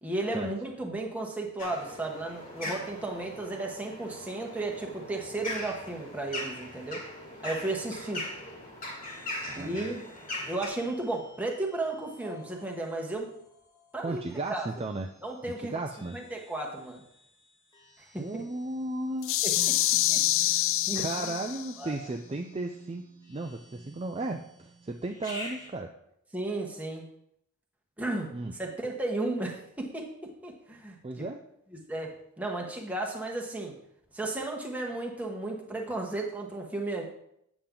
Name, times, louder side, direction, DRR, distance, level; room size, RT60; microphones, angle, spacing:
voice 1, 0.0-7.0 7.4-8.3 9.5-10.0 10.5-13.3 13.9-14.2 14.5-14.7 15.2-15.7 16.1-17.0 18.1-18.4 19.4-19.5 20.1-20.5 20.9-21.3 21.8-22.0 26.3-27.0 28.0-28.3 28.6-31.3 31.9-33.7 34.1-37.0, right 2 dB, 5° right, 0 dB, 1.2 m, -34 dB
sound 1, 1.6-10.7, left 1 dB, 35° left, 1.9 m, -40 dB
sound 2, 9.0-25.7, equal, 20° left, 1.7 m, -51 dB
voice 2, 9.4-10.0 14.0-15.1 15.6-16.2 18.2-19.4 20.5-20.7 20.9-23.0 23.3-25.9 28.3-28.5 31.0-31.4, right 2 dB, 25° right, 3 dB, 0.4 m, -35 dB
sound 3, 19.2-21.8, left 14 dB, 60° left, 0.3 m, -26 dB
8.6 x 7.1 x 3.8 m, 0.75 s
head